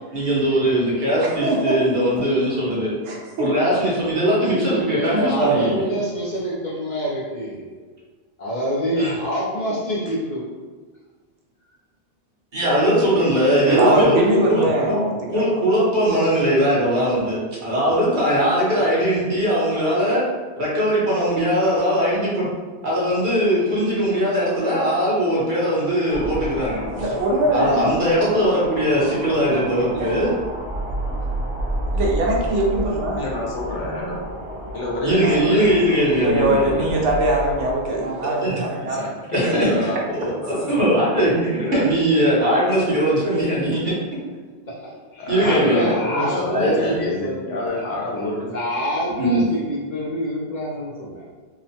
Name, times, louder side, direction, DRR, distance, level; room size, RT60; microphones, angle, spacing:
voice 1, 0.1-2.9 3.4-5.8 9.0-9.1 12.5-15.0 15.3-20.2 20.6-22.4 22.8-26.8 27.5-30.3 35.0-37.0 37.8-38.1 38.4-38.6 39.3-39.9 40.2-43.9 45.3-45.9 46.5-46.9 49.2-49.4, equal, 45° right, -7 dB, 1.0 m, -20 dB
voice 2, 1.2-1.8 3.1-3.5 5.4-5.6 13.6-15.4 27.0-27.9 29.5-29.6 29.9-30.1 31.9-33.2 35.2-35.5 36.2-39.1, right 1 dB, 85° right, -2 dB, 1.0 m, -22 dB
voice 3, 4.4-7.7 8.4-10.5 13.3-13.4 14.5-14.6 44.7-48.0 48.5-51.3, equal, 55° left, -6 dB, 0.6 m, -26 dB
sound 1, 26.1-37.8, right 1 dB, 65° right, 0.3 m, -30 dB
voice 4, 33.2-34.2 34.7-36.1 38.9-40.7 41.6-41.9 45.2-48.5, left 2 dB, 85° left, -3 dB, 1.0 m, -29 dB
2.8 x 2.1 x 2.7 m, 1.4 s
omnidirectional pair, 1.2 m